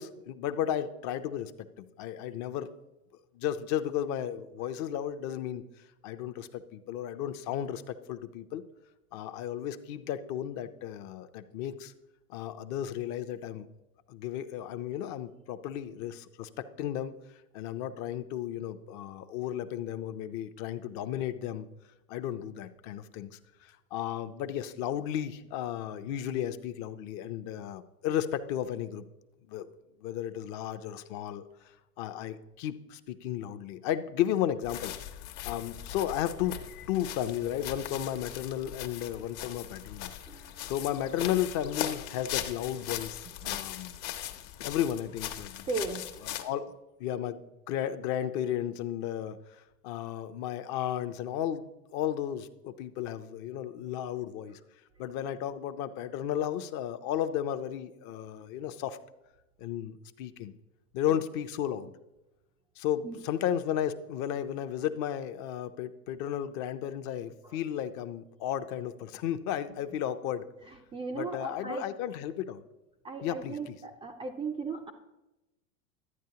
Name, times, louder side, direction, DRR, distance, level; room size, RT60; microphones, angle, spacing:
voice 1, 0.0-1.5 1.8-2.7 3.3-5.6 6.0-8.6 9.1-11.9 12.3-13.7 14.1-17.1 17.5-21.7 22.1-29.0 29.5-29.7 30.0-31.4 32.0-34.9 35.4-36.6 36.9-40.1 40.6-44.0 44.3-44.4 44.6-45.6 46.2-46.7 47.0-47.4 47.7-54.6 55.0-59.0 59.6-60.5 60.9-61.9 62.8-70.5 71.1-72.6 73.2-73.8, left 10 dB, 45° left, 11 dB, 0.6 m, -34 dB
sound 1, 34.6-46.4, left 12 dB, 60° left, 1.0 m, -39 dB
voice 2, 40.3-40.7 43.3-43.6 45.7-46.1 61.1-61.2 63.0-63.2 67.4-67.6 70.9-71.9 73.0-74.9, right 4 dB, 15° right, 3 dB, 0.3 m, -37 dB
12.0 x 8.7 x 2.8 m, 0.98 s
supercardioid pair, 115°, 42 cm